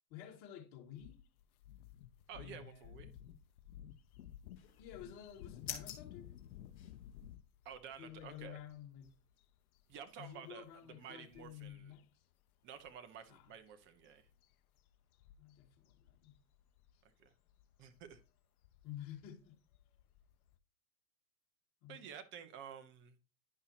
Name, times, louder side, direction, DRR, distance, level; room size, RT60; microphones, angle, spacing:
voice 1, 0.1-1.2 2.4-3.1 4.8-6.3 8.0-9.1 10.2-12.2 13.3-13.5 15.4-16.3 18.8-19.6 21.8-22.0, left 10 dB, 40° left, 2.2 m, -51 dB
sound 1, 1.0-12.0 12.3-12.5 12.8-20.6, left 11 dB, 60° left, 0.8 m, -57 dB
voice 2, 2.3-3.1 7.6-8.6 9.9-11.9 12.6-14.3 17.0-17.3 17.8-18.2 21.9-23.2, right 8 dB, 25° right, 0.9 m, -51 dB
sound 2, 4.6-7.4, left 8 dB, 25° left, 1.7 m, -50 dB
10.5 x 5.6 x 2.9 m
hypercardioid pair, 130°, 50 cm